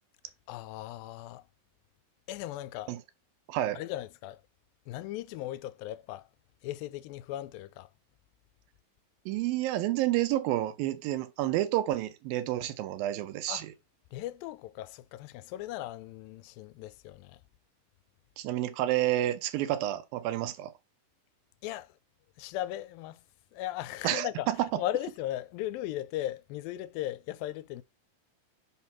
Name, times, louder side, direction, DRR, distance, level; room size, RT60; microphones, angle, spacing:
voice 1, 0.5-1.5 2.3-3.0 3.7-4.4 4.9-6.3 6.6-7.9 13.5-13.7 14.1-17.4 21.6-22.0 22.4-23.2 23.5-24.5 24.8-27.8, left 14 dB, 85° left, 2.3 m, -37 dB
voice 2, 3.5-3.8 9.3-13.7 18.4-20.7 24.0-24.6, right 14 dB, 80° right, 2.5 m, -29 dB
5.6 x 4.1 x 5.9 m
omnidirectional pair, 4.1 m